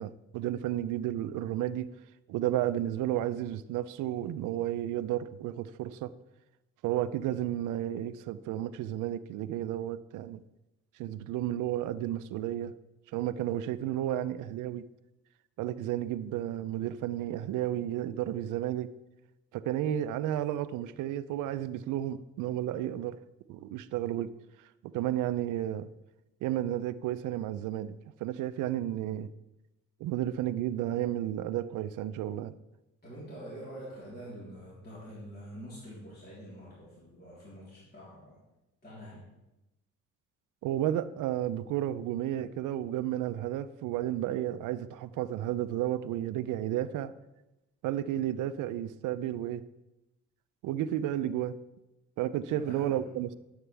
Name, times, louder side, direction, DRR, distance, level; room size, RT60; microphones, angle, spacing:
voice 1, 0.0-1.9 2.3-6.1 6.8-10.4 11.0-12.7 13.1-14.9 15.6-18.9 19.5-23.2 23.5-24.3 24.6-25.9 26.4-29.3 30.0-32.5 40.6-47.1 47.8-49.6 50.6-51.6 52.2-53.4, right 12 dB, 90° right, 0.5 m, -32 dB
voice 2, 33.0-38.4 38.8-39.3 52.5-53.1, equal, 35° left, 3.6 m, -46 dB
11.0 x 8.0 x 3.4 m
cardioid pair, 90°, 30 cm